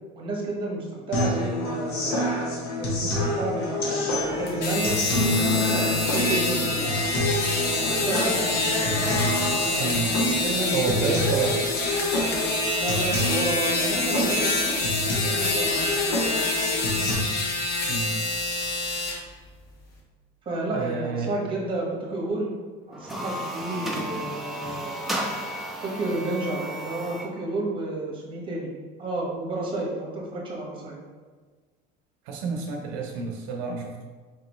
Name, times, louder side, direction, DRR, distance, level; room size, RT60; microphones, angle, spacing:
voice 1, 0.2-2.3 2.8-7.2 7.8-11.1 12.7-16.0 20.4-22.5 22.9-25.1 25.8-28.7 29.0-31.0, right 2 dB, 25° right, -2 dB, 1.1 m, -31 dB
sound 1, 1.1-17.1, left 1 dB, 85° left, 1.4 m, -27 dB
sound 2, 4.5-19.2, left 2 dB, 50° left, 0.9 m, -27 dB
voice 2, 9.8-10.1 10.7-11.7 17.9-18.3 20.7-21.3 32.3-34.0, right 5 dB, 70° right, 1 dB, 0.6 m, -29 dB
sound 3, 22.9-27.3, right 1 dB, ahead, 0.4 m, -33 dB
4.8 x 2.9 x 3.0 m, 1.5 s
cardioid pair, 150°, 21 cm